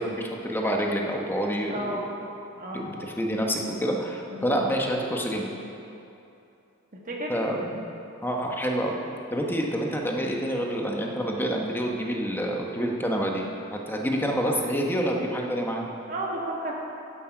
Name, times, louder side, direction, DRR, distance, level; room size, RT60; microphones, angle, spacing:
voice 1, 0.0-2.1 2.7-5.5 7.3-7.8 8.2-9.0 9.3-13.5 13.7-15.9, equal, 10° left, 0 dB, 1.0 m, -27 dB
voice 2, 1.7-2.1 2.6-2.9 4.3-4.6 7.1-7.3 16.1-16.7, right 1 dB, 40° right, -2 dB, 1.7 m, -32 dB
11.0 x 7.6 x 5.9 m, 2.7 s
head